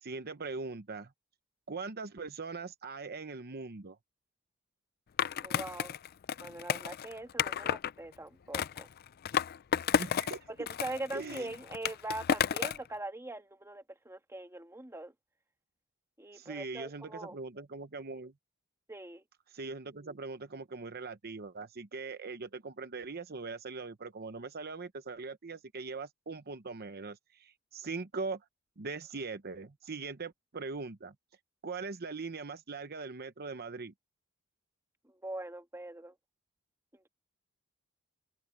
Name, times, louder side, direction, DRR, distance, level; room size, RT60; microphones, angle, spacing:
voice 1, 0.0-1.1 1.7-4.0 10.0-10.5 11.1-11.5 16.3-18.3 19.5-28.4 28.8-31.1 31.6-33.9, right 4 dB, 45° right, 0.9 m, -41 dB
Skateboard, 5.2-7.9 8.5-10.4 10.7-12.9, left 8 dB, 45° left, 0.4 m, -32 dB
voice 2, 5.4-6.0 6.4-8.9 10.5-15.1 16.2-17.4 18.9-19.2 35.0-36.1 36.9-37.1, right 2 dB, 10° right, 1.5 m, -42 dB
head